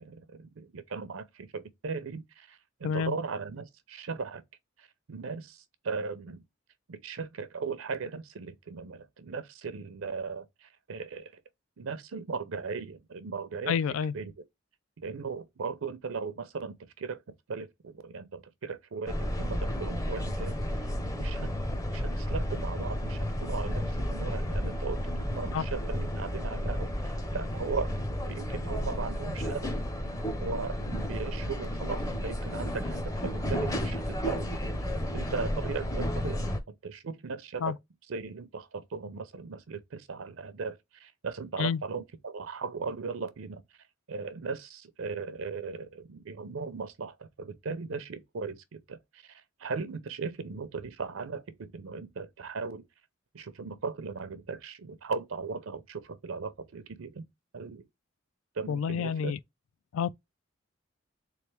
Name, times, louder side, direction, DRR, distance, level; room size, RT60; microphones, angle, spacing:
voice 1, 0.0-4.4 4.8-6.4 6.9-11.4 11.8-13.8 14.1-14.3 15.0-17.2 17.5-27.9 28.2-29.7 30.4-34.5 35.1-37.8 38.1-43.6 44.1-52.8 53.3-57.2 57.5-57.8 58.5-59.4, right 4 dB, 85° right, 0.6 m, -38 dB
voice 2, 13.7-14.1 25.5-25.7 37.6-37.7 41.6-41.8 58.7-59.4 59.9-60.1, left 7 dB, 85° left, 0.3 m, -29 dB
sound 1, 19.1-36.6, equal, 15° left, 0.6 m, -32 dB
3.6 x 3.2 x 3.2 m
head